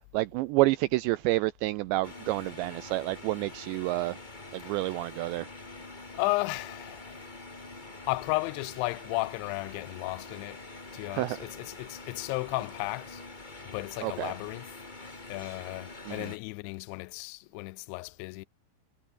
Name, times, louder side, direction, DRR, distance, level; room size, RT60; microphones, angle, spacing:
voice 1, 0.1-4.2 4.5-5.5 11.1-11.4 14.0-14.3 16.1-16.3, right 19 dB, 85° right, 2.6 m, -29 dB
sound 1, 2.0-16.4, left 2 dB, 65° left, 0.4 m, -45 dB
voice 2, 4.6-5.0 6.1-7.2 8.1-10.6 10.9-13.2 13.7-14.8 15.3-18.5, left 24 dB, 80° left, 2.7 m, -34 dB
omnidirectional pair, 5.6 m